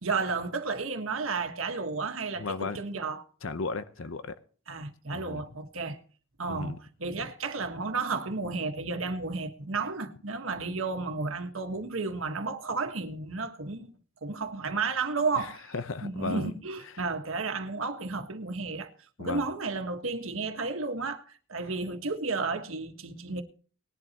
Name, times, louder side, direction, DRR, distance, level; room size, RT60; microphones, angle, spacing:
voice 1, 0.0-3.2 4.7-6.0 6.4-13.9 14.2-15.7 16.0-18.9 19.2-23.4, right 4 dB, 85° right, 1.5 m, -32 dB
voice 2, 2.4-2.8 3.4-4.4 5.1-5.4 6.5-6.8 15.4-16.5 19.2-19.5, left 3 dB, 75° left, 0.8 m, -35 dB
19.5 x 11.0 x 3.0 m
head